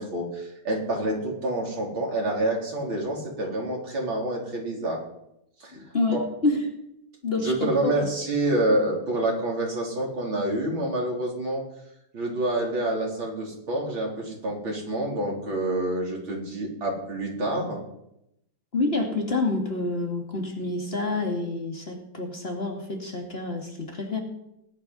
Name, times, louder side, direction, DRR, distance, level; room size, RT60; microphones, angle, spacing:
voice 1, 0.0-5.0 5.6-5.8 6.1-6.2 7.4-11.6 12.1-17.8, right 1 dB, 80° right, -2 dB, 4.9 m, -27 dB
voice 2, 5.7-6.6 7.2-7.9 18.7-24.2, left 3 dB, 30° left, 1 dB, 2.6 m, -28 dB
19.0 x 11.0 x 5.6 m, 0.81 s
omnidirectional pair, 2.1 m